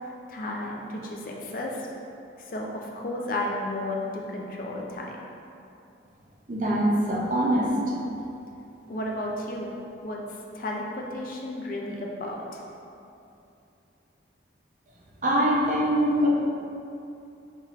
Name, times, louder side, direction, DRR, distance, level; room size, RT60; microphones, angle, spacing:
voice 1, 0.0-1.9 2.4-5.2 8.9-9.8 10.0-10.2 10.5-12.6, left 1 dB, 45° left, -1 dB, 0.4 m, -33 dB
voice 2, 6.5-7.7 15.2-16.3, right 1 dB, 45° right, -3 dB, 0.5 m, -23 dB
4.1 x 3.7 x 2.4 m, 2.7 s
head